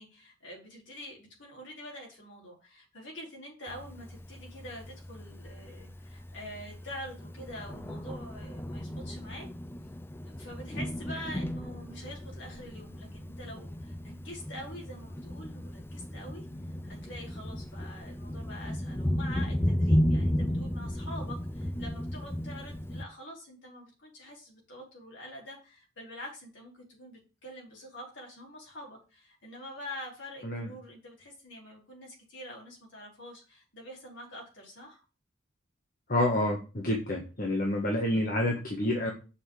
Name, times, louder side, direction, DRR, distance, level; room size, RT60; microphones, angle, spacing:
voice 1, 0.0-9.5 10.3-16.4 16.8-35.0, left 1 dB, 60° left, -1 dB, 4.7 m, -46 dB
Thunder, 3.7-23.0, equal, 10° left, 0.4 m, -34 dB
voice 2, 36.1-39.1, left 1 dB, 45° left, 0 dB, 1.7 m, -28 dB
7.3 x 5.6 x 6.9 m, 0.33 s
head